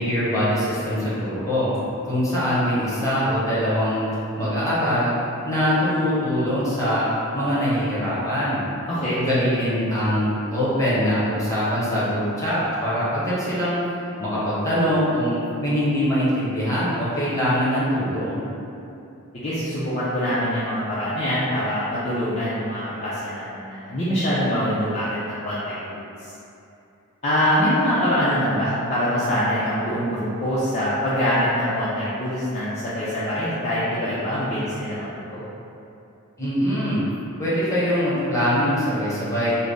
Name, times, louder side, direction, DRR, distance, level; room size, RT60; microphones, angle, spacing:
voice 1, 0.0-1.7 2.0-4.0 4.4-5.1 5.4-8.6 9.1-13.8 14.2-18.4 36.4-37.0 37.4-39.6, equal, 15° left, -10 dB, 0.9 m, -23 dB
voice 2, 19.3-26.3 27.2-35.4, equal, 30° left, -11 dB, 0.5 m, -24 dB
3.4 x 2.0 x 3.8 m, 2.7 s
head